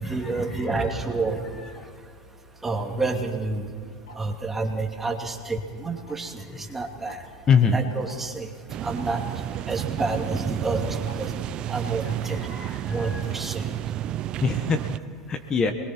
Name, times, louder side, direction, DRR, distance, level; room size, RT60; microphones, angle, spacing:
voice 1, 0.0-1.4 2.6-3.7 4.2-6.3 6.7-7.2 7.6-8.5 8.8-9.2 9.7-11.3 11.7-12.4 12.9-13.6, right 3 dB, 10° right, 2 dB, 2.8 m, -28 dB
Tick-tock, 3.1-3.2 4.1-4.4 5.1-5.3 6.1-6.2 6.5-6.6 7.1-7.2 8.1-8.2 9.1-9.2 10.1-10.2 11.1-11.2 12.1-12.2, left 2 dB, 80° left, 2.5 m, -44 dB
voice 2, 7.5-7.8 12.3-13.3 14.4-14.8 15.3-15.7, left 6 dB, 30° left, 7 dB, 1.5 m, -23 dB
sound 1, 8.7-15.0, right 12 dB, 40° right, 0.6 m, -31 dB
28.0 x 22.0 x 4.6 m, 2.1 s
supercardioid pair, 120°, 2 cm